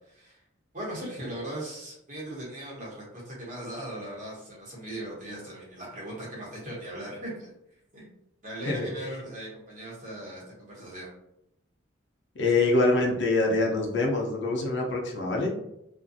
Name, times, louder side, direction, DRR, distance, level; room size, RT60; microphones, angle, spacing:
voice 1, 0.1-0.4 0.7-7.5 7.9-8.1 8.4-11.1, right 1 dB, 40° right, -5 dB, 1.0 m, -39 dB
voice 2, 12.4-15.5, left 2 dB, 65° left, -1 dB, 0.5 m, -25 dB
2.5 x 2.3 x 2.6 m, 0.81 s
head